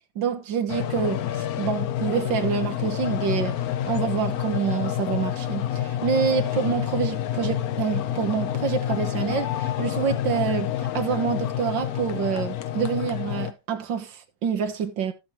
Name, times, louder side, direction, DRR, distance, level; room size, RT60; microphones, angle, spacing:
voice 1, 0.1-3.6 3.9-15.1, right 7 dB, 65° right, 1.8 m, -27 dB
sound 1, 0.7-13.5, left 11 dB, 70° left, 0.9 m, -28 dB
15.0 x 6.7 x 2.9 m
omnidirectional pair, 2.3 m